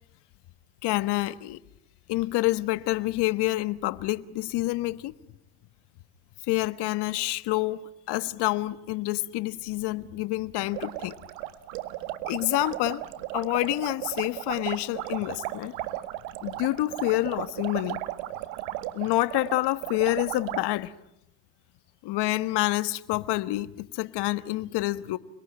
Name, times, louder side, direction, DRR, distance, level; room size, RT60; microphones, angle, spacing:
voice 1, 0.8-1.6 2.1-5.1 6.5-11.1 12.3-13.0 13.3-15.7 16.4-18.0 18.9-20.9 22.0-25.2, left 18 dB, 55° left, 1.5 m, -27 dB
sound 1, 10.7-20.6, right 16 dB, 75° right, 1.9 m, -35 dB
30.0 x 21.5 x 9.0 m
supercardioid pair, 115°, 47 cm